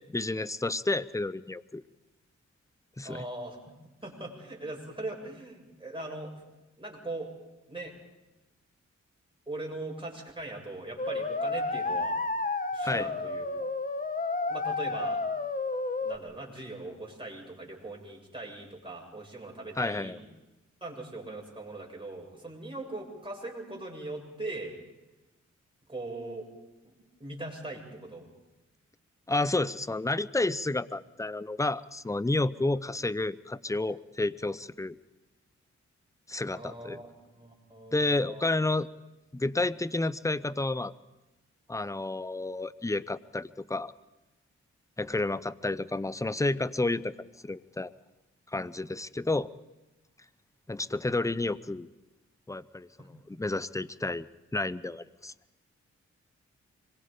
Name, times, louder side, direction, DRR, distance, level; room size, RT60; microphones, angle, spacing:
voice 1, 0.1-1.8 3.0-3.2 12.8-13.1 19.8-20.2 29.3-35.0 36.3-37.0 37.9-38.9 39.3-40.9 41.7-43.9 45.0-47.1 47.4-47.9 48.5-49.5 50.7-51.9 52.5-52.9 53.3-54.2 54.5-55.3, left 2 dB, 10° left, 18 dB, 0.8 m, -30 dB
voice 2, 3.0-3.8 4.0-6.4 6.8-7.3 7.7-7.9 9.5-12.2 12.7-13.5 14.5-15.2 16.0-20.3 20.8-24.8 25.9-26.5 26.8-26.9 27.2-28.3 36.5-38.5 45.0-45.4 53.0-53.1, right 2 dB, 15° right, -1 dB, 7.8 m, -40 dB
sound 1, 11.0-16.2, left 3 dB, 30° left, 1.6 m, -31 dB
25.5 x 22.5 x 5.2 m, 1.1 s
cardioid pair, 50°, 29 cm